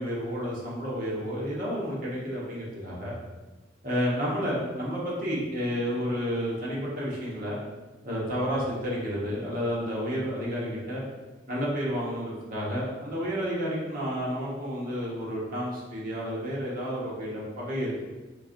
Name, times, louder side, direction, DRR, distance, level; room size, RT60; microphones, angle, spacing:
voice 1, 0.0-3.1 3.8-7.6 8.0-11.0 11.5-18.0, equal, 50° right, -5 dB, 1.3 m, -31 dB
4.5 x 3.9 x 2.6 m, 1.2 s
head